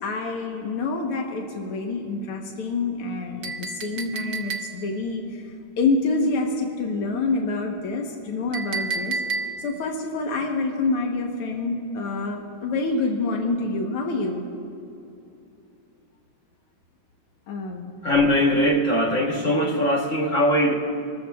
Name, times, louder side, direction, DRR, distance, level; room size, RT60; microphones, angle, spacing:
voice 1, 0.0-5.4 5.8-9.2 9.6-14.4 17.5-17.9, left 3 dB, 85° left, 2.0 m, -27 dB
Chink clink, 3.4-5.0 8.5-9.8, right 4 dB, 55° right, 1.2 m, -31 dB
voice 2, 18.0-20.7, equal, 40° left, 1.4 m, -21 dB
27.5 x 14.0 x 2.3 m
omnidirectional pair, 2.3 m